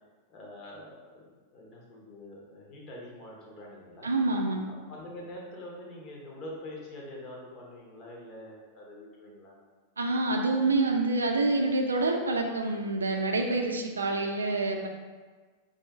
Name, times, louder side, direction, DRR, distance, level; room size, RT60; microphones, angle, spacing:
voice 1, 0.3-4.1 4.7-9.6, left 1 dB, 35° left, -3 dB, 1.2 m, -45 dB
voice 2, 4.0-4.6 10.0-14.9, right 2 dB, 75° right, 3 dB, 0.5 m, -27 dB
4.9 x 2.7 x 3.5 m, 1.4 s
figure-of-eight pair, 90°, 0 cm